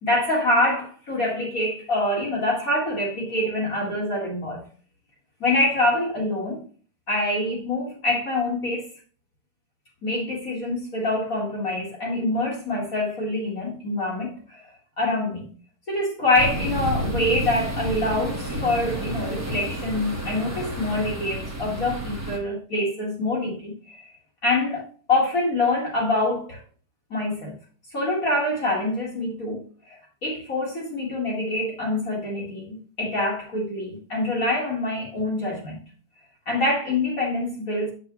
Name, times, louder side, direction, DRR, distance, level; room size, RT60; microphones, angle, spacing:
voice 1, 0.0-4.6 5.4-6.6 7.1-8.9 10.0-14.6 15.0-15.5 15.9-24.1 24.4-26.6 27.1-27.6 27.9-35.8 36.5-37.9, left 2 dB, 40° left, 2.2 m, -25 dB
sound 1, 16.4-22.4, right 1 dB, 10° right, 1.2 m, -30 dB
8.4 x 6.0 x 3.1 m
omnidirectional pair, 2.4 m